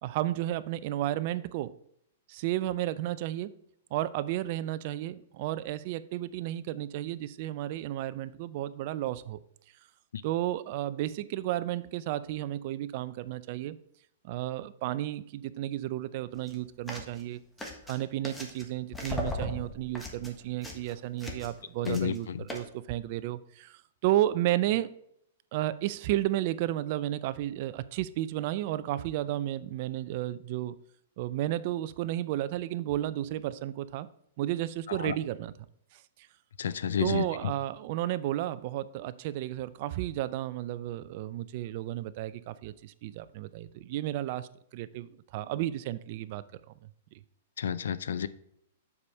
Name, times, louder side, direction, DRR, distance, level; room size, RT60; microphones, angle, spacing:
voice 1, 0.0-1.7 2.3-3.5 3.9-9.4 10.2-13.8 14.2-17.4 17.9-24.9 25.5-30.7 31.2-34.1 34.4-35.5 35.9-36.0 37.0-46.4 46.8-46.9, right 14 dB, 45° right, 0.5 m, -32 dB
sound 1, 16.4-16.5 16.9-17.2 17.6-18.7 18.9-21.6 21.8-22.2 22.5-22.6, left 1 dB, 5° left, 1.3 m, -38 dB
voice 2, 36.6-37.2 47.6-48.3, left 8 dB, 80° left, 0.5 m, -30 dB
7.2 x 4.9 x 5.3 m
hypercardioid pair, 145°, 0 cm